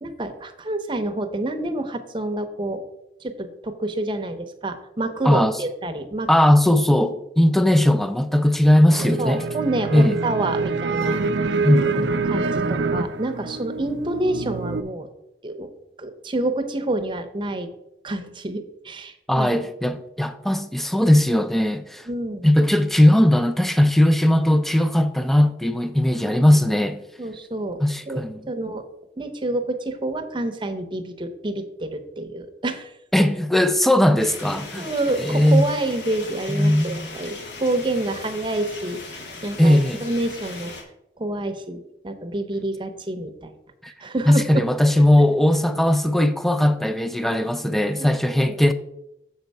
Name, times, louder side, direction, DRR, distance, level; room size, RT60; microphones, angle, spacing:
voice 1, 0.0-2.8 3.2-6.3 9.2-11.2 11.5-11.6 12.3-15.1 15.4-15.7 16.0-17.7 18.0-19.6 22.1-22.5 26.2-26.5 27.2-28.8 29.2-32.9 34.8-40.7 41.2-43.5 44.0-44.6 44.9-45.0 48.0-48.6, right 2 dB, 30° right, 0.7 m, -28 dB
voice 2, 5.2-5.6 6.3-9.4 9.9-10.2 11.6-12.1 19.3-22.1 22.4-27.0 27.8-28.4 33.1-34.9 35.2-35.7 36.5-37.2 39.6-40.1 43.8-43.9 44.3-48.7, left 1 dB, ahead, 0.3 m, -18 dB
sound 1, 9.0-14.8, right 3 dB, 90° right, 0.5 m, -25 dB
sound 2, 34.2-40.8, left 3 dB, 85° left, 1.4 m, -38 dB
7.0 x 4.5 x 5.3 m
head